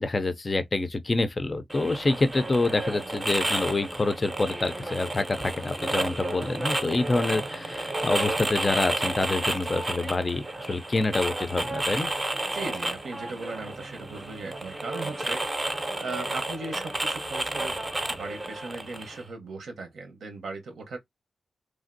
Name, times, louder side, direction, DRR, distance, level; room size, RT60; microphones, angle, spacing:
voice 1, 0.0-12.1, left 2 dB, 25° left, 0.4 m, -27 dB
sound 1, 1.7-19.2, right 2 dB, 20° right, 0.5 m, -31 dB
voice 2, 12.5-17.8 18.1-21.0, right 3 dB, 85° right, 0.8 m, -38 dB
3.2 x 2.5 x 2.5 m
wide cardioid pair, 160°, 0 cm